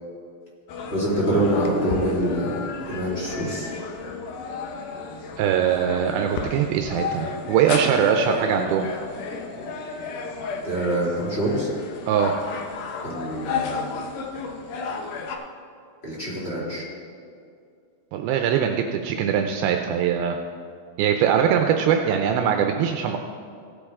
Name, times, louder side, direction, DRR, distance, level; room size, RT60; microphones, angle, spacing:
sound 1, 0.7-15.4, left 4 dB, 70° left, 2.2 m, -32 dB
voice 1, 0.9-3.7 10.6-11.7 13.0-14.1 16.0-16.8, right 1 dB, 20° left, -6 dB, 2.1 m, -25 dB
voice 2, 5.4-8.9 12.1-12.4 18.1-20.4 21.0-23.2, right 8 dB, 80° right, 4 dB, 2.4 m, -22 dB
17.0 x 8.5 x 3.6 m, 2.4 s
omnidirectional pair, 4.4 m